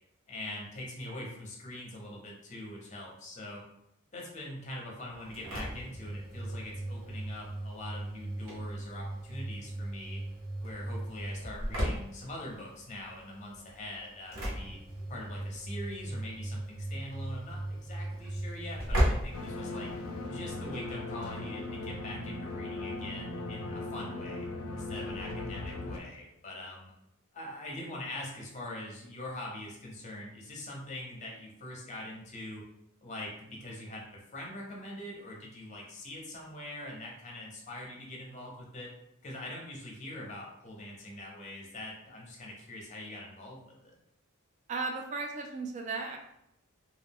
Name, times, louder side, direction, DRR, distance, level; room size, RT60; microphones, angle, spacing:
voice 1, 0.3-3.6 4.1-10.2 10.6-14.8 15.1-19.9 20.3-24.5 24.7-26.9 27.3-32.6 33.0-38.9 39.2-43.9, left 1 dB, 35° left, -2 dB, 0.6 m, -43 dB
Engine / Slam, 5.1-20.2, right 1 dB, 65° right, 0.9 m, -36 dB
sound 1, 19.3-26.0, left 2 dB, 75° left, 0.4 m, -38 dB
voice 2, 44.7-46.2, right 4 dB, 35° right, 2 dB, 0.3 m, -35 dB
2.3 x 2.1 x 3.4 m, 0.79 s
head